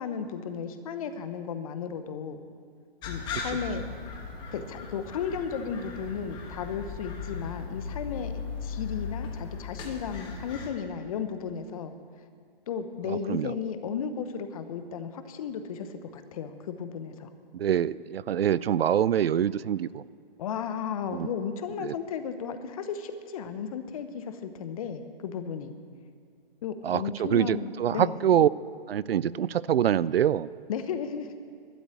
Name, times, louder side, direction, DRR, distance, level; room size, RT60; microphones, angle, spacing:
voice 1, 0.0-2.4 3.1-3.8 4.5-8.3 8.6-11.9 12.7-17.3 20.4-25.7 26.6-28.2 30.7-31.4, left 7 dB, 35° left, 9 dB, 1.0 m, -34 dB
sound 1, 3.0-10.7, left 5 dB, 15° left, 1.2 m, -37 dB
voice 2, 13.1-13.5 17.5-20.0 21.1-21.3 21.8-21.9 26.8-28.5 28.9-30.5, right 10 dB, 75° right, 19 dB, 0.5 m, -25 dB
12.5 x 9.4 x 9.1 m, 2.2 s
hypercardioid pair, 150°, 30 cm